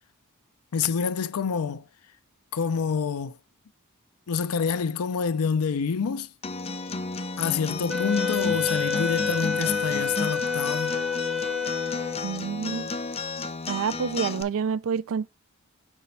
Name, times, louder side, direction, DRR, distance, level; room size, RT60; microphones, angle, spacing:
voice 1, 0.7-1.9 2.5-3.4 4.3-6.3 7.4-11.0, left 6 dB, 85° left, 0.5 m, -27 dB
Acoustic guitar, 6.4-14.4, left 3 dB, 30° left, 0.5 m, -33 dB
Wind instrument woodwind instrument, 7.9-12.4, left 5 dB, ahead, 0.8 m, -28 dB
voice 2, 12.2-12.9 13.7-15.3, right 6 dB, 65° right, 0.4 m, -28 dB
6.2 x 4.3 x 5.3 m
head